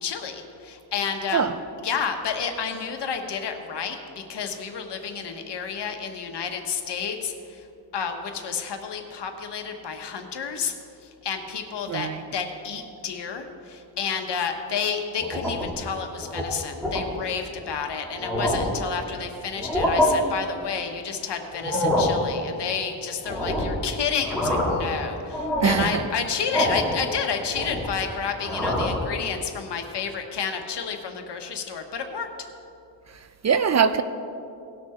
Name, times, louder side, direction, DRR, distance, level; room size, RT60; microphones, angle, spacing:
voice 1, 0.0-1.5 1.8-7.7 7.9-10.7 11.0-32.3, left 6 dB, 70° left, 1.3 m, -30 dB
voice 2, 11.9-12.2 25.6-26.1 33.1-34.0, right 6 dB, 40° right, 0.5 m, -22 dB
sound 1, 15.2-15.8 16.2-16.4 16.8-17.0 17.7-17.8 18.1-18.8 19.5-20.1 21.5-22.2 23.2-23.8 24.2-24.9 25.3-25.9 26.5-27.0 27.3-28.0 28.4-29.0, left 1 dB, ahead, 2.2 m, -25 dB
18.5 x 6.1 x 4.3 m
cardioid pair, 100°, 43 cm